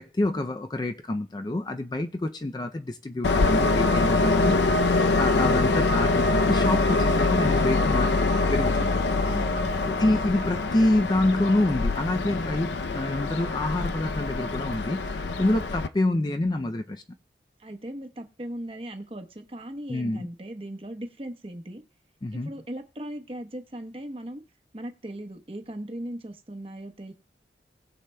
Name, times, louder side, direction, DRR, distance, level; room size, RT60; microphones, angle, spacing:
voice 1, 0.0-4.8 5.2-8.9 9.8-17.0 19.9-20.3 22.2-22.5, left 2 dB, 25° left, 0.4 m, -27 dB
Train, 3.2-15.9, left 3 dB, 85° left, 0.6 m, -24 dB
voice 2, 9.2-10.0 17.6-21.8 22.3-24.4 24.7-27.1, right 1 dB, 30° right, 0.9 m, -38 dB
19.5 x 6.6 x 2.2 m
head